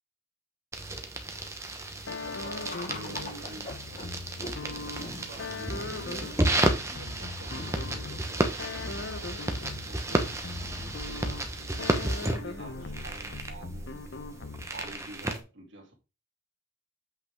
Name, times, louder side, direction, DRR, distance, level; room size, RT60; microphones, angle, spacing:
sound 1, 0.7-15.4, right 1 dB, 15° right, 1.0 m, -32 dB
voice 1, 1.9-4.9 5.3-9.0 9.6-11.4 11.7-11.9 12.4-14.1 14.7-15.9, right 1 dB, 70° right, 2.6 m, -48 dB
sound 2, 2.1-15.0, left 3 dB, 70° left, 0.7 m, -41 dB
sound 3, 2.7-15.3, left 1 dB, 40° left, 1.9 m, -45 dB
8.2 x 5.6 x 3.5 m
head